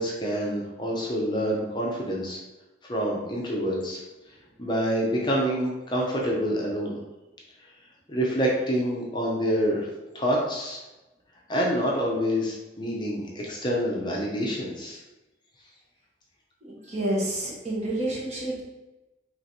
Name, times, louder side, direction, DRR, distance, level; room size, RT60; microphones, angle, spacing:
voice 1, 0.0-2.4 2.8-4.0 4.6-7.0 8.1-9.9 10.1-10.8 11.5-15.0, equal, 25° left, -3 dB, 0.6 m, -27 dB
voice 2, 16.6-18.6, right 1 dB, 40° right, -5 dB, 1.2 m, -29 dB
3.2 x 3.1 x 4.0 m, 1.0 s
head